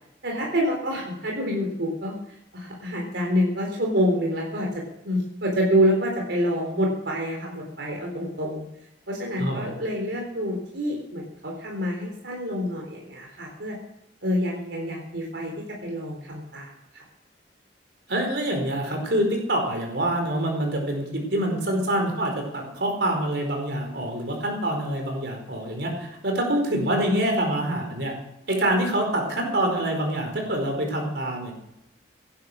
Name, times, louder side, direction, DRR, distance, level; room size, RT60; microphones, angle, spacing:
voice 1, 0.2-2.1 2.5-4.7 5.0-8.6 9.1-13.8 14.2-15.5 15.8-17.0, equal, 90° right, 0 dB, 3.9 m, -27 dB
voice 2, 9.4-9.7 18.1-28.1 28.5-31.5, right 1 dB, 70° right, 3 dB, 4.8 m, -26 dB
17.0 x 11.0 x 6.4 m, 0.83 s
head